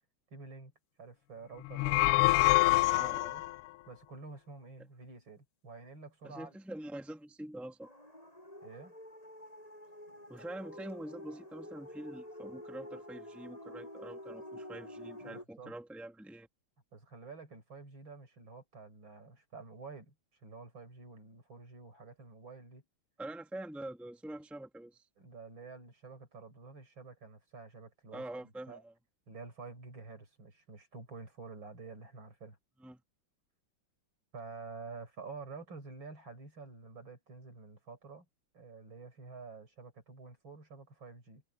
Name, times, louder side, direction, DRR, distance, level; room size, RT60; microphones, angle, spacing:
voice 1, 0.3-0.7 1.0-3.4 3.9-6.6 8.6-8.9 15.2-15.7 16.9-20.1 20.4-22.8 25.2-28.8 29.3-32.6 34.3-38.3 38.5-41.4, right 4 dB, 60° right, 5.7 m, -49 dB
sound 1, 1.6-3.6, left 20 dB, 85° left, 1.5 m, -26 dB
voice 2, 2.9-3.4 6.2-7.9 10.3-16.5 23.2-25.1 28.1-28.9 32.8-33.0, right 1 dB, ahead, 1.9 m, -45 dB
sound 2, 7.8-15.4, left 1 dB, 15° left, 8.1 m, -48 dB
omnidirectional pair, 2.4 m